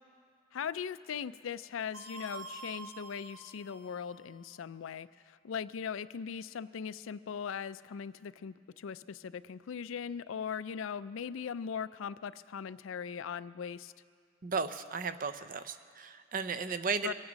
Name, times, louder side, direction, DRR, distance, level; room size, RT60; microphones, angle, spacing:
voice 1, 0.5-13.9 17.0-17.1, left 7 dB, 75° left, 16 dB, 0.4 m, -39 dB
sound 1, 1.9-4.3, right 3 dB, 70° right, 2.7 m, -47 dB
voice 2, 14.4-17.1, right 5 dB, 40° right, 11 dB, 0.5 m, -35 dB
24.5 x 8.8 x 5.2 m, 2.2 s
head